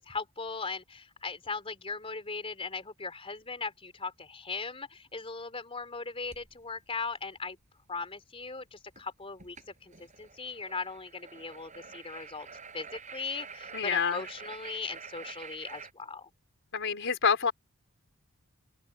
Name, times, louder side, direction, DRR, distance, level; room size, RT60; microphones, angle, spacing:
voice 1, 0.0-7.6 7.9-9.6 9.8-9.9 10.2-12.5 12.7-16.3, left 4 dB, 25° left, 3.7 m, -38 dB
sound 1, 6.3-6.5 9.0-9.1 9.4-9.6 9.9-15.9, right 5 dB, 35° right, 6.7 m, -47 dB
voice 2, 13.7-14.2 16.7-17.5, left 6 dB, 60° left, 4.7 m, -27 dB
open air
head